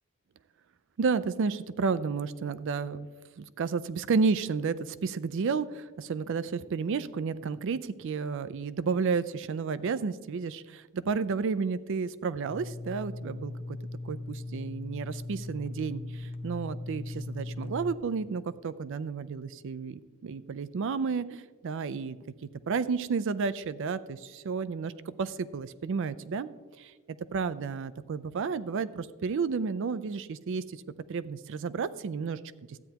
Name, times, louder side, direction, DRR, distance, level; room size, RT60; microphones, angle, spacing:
voice 1, 1.0-3.1 3.4-13.5 14.0-22.2 22.7-24.9 25.2-26.5 27.3-30.8 31.1-32.4, right 5 dB, 60° right, 16 dB, 0.4 m, -31 dB
sound 1, 12.5-18.0, left 2 dB, 25° left, 0.6 m, -39 dB
13.0 x 9.1 x 2.9 m, 1.4 s
head